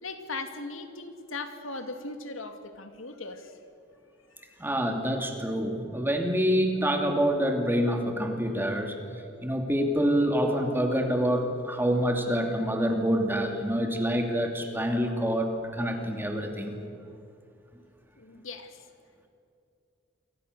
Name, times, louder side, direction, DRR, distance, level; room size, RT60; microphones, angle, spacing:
voice 1, 0.0-3.5 4.4-4.5 18.2-18.8, left 3 dB, 85° left, 7 dB, 2.4 m, -38 dB
voice 2, 4.6-8.9 9.4-16.8, equal, 10° right, 3 dB, 2.8 m, -26 dB
28.5 x 24.5 x 6.8 m, 2.5 s
head